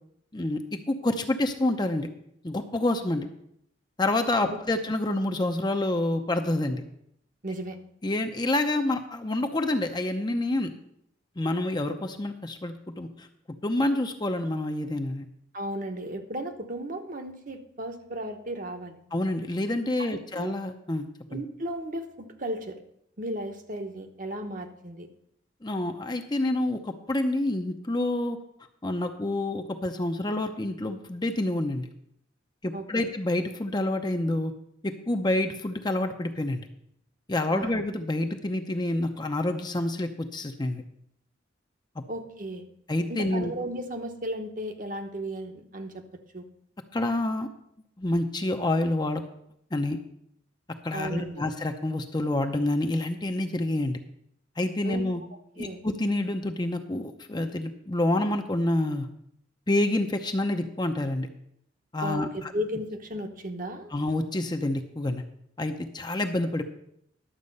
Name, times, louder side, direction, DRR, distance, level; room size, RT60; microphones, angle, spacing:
voice 1, 0.3-2.1 2.4-3.3 4.0-6.8 8.0-10.7 11.4-13.3 13.6-15.3 19.1-21.4 25.6-28.4 28.8-31.9 32.6-34.5 34.8-36.7 37.3-40.8 42.9-43.5 46.9-47.5 48.0-49.2 49.7-50.0 50.8-54.0 54.6-55.2 55.6-59.1 59.7-61.3 61.9-62.5 63.9-65.2 65.6-66.6, left 1 dB, 20° left, 6 dB, 0.7 m, -28 dB
voice 2, 7.4-7.8 15.5-19.0 20.0-20.5 21.3-22.8 23.2-25.1 32.7-33.0 37.5-37.7 42.1-42.7 43.1-46.0 46.3-46.5 50.9-51.5 54.8-55.1 55.6-55.8 62.0-63.9, right 1 dB, 45° right, 5 dB, 1.0 m, -35 dB
11.5 x 7.4 x 5.4 m, 0.75 s
head